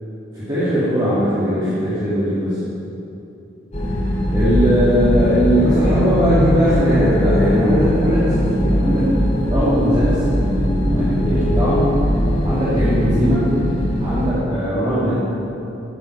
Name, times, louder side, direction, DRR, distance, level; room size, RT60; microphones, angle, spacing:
voice 1, 0.3-2.6 4.3-9.1 9.5-11.9 12.4-13.6 14.0-15.2, equal, 25° right, -12 dB, 2.5 m, -19 dB
sound 1, 3.7-14.3, equal, 40° left, 2.4 m, -20 dB
13.0 x 9.9 x 4.6 m, 2.8 s
head